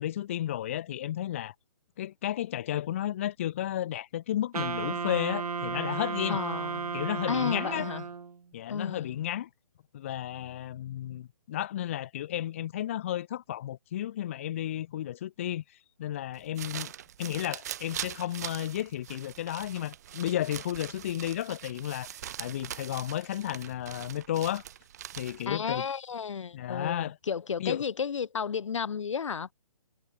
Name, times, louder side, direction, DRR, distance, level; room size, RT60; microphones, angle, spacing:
voice 1, 0.0-1.5 2.0-6.4 6.9-7.9 8.5-9.5 9.9-15.6 16.0-16.9 17.2-24.6 25.2-25.9 26.5-27.2 27.6-27.8, left 12 dB, 20° left, 0.9 m, -33 dB
Wind instrument woodwind instrument, 4.5-8.4, right 5 dB, 80° right, 1.9 m, -34 dB
voice 2, 6.3-6.9 7.3-8.0 8.7-9.2 25.5-29.5, left 6 dB, 55° left, 1.0 m, -32 dB
sound 1, 16.3-25.6, right 11 dB, 25° right, 1.6 m, -42 dB
hypercardioid pair, 175°, 19 cm